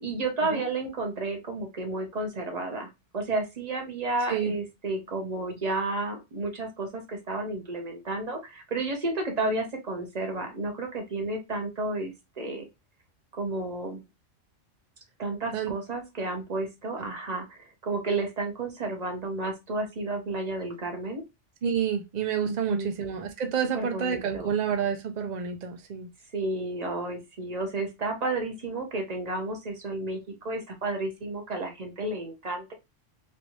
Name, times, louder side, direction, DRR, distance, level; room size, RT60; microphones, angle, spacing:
voice 1, 0.0-2.9 3.1-12.7 13.4-14.0 15.2-21.2 22.4-22.9 23.7-24.5 26.3-32.7, right 2 dB, 35° right, 0.9 m, -32 dB
voice 2, 21.6-26.1, right 7 dB, 75° right, 0.4 m, -29 dB
3.2 x 2.6 x 3.0 m
omnidirectional pair, 1.3 m